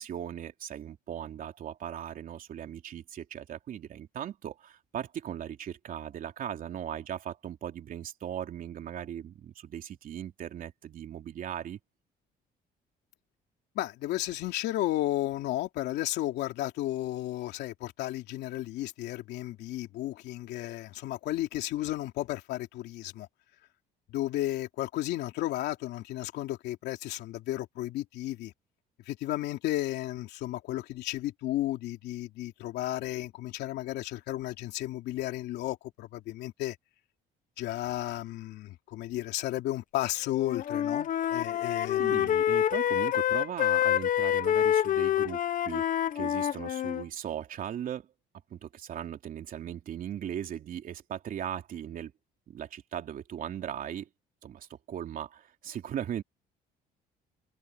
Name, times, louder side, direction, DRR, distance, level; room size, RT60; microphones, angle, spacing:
voice 1, 0.0-11.8 42.0-48.1 48.5-52.1 52.5-54.1 54.4-56.2, right 10 dB, 55° right, 3.3 m, -38 dB
voice 2, 13.7-23.3 24.1-28.5 29.1-36.8 37.6-42.3, left 15 dB, 80° left, 3.1 m, -33 dB
Wind instrument woodwind instrument, 40.3-47.0, left 11 dB, 55° left, 1.0 m, -27 dB
cardioid pair, 110°, 17 cm